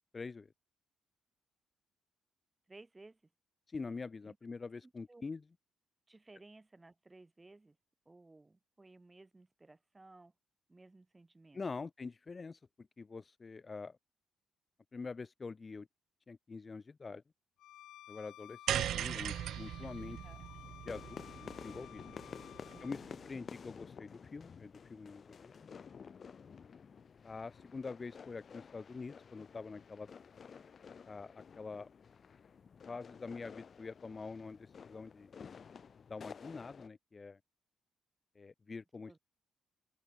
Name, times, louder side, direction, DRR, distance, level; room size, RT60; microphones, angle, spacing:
voice 1, 0.1-0.5 3.7-5.4 11.5-14.0 14.9-15.9 16.3-17.2 18.1-20.2 20.8-22.0 22.8-23.0 23.2-25.5 27.2-30.1 31.1-31.9 32.9-35.3 36.1-37.4 38.3-39.2, left 4 dB, 30° left, 1.0 m, -45 dB
voice 2, 2.7-3.2 4.2-4.4 4.8-5.2 6.1-7.8 8.0-10.3 10.7-11.6 20.1-20.5 22.7-23.1 39.1-39.2, right 2 dB, 20° right, 7.9 m, -58 dB
Bowed string instrument, 17.6-23.0, left 14 dB, 85° left, 4.8 m, -55 dB
sound 1, 18.7-23.1, right 11 dB, 75° right, 0.4 m, -39 dB
sound 2, 19.3-36.9, left 6 dB, 45° left, 2.2 m, -52 dB
open air
cardioid pair, 90°, 0 cm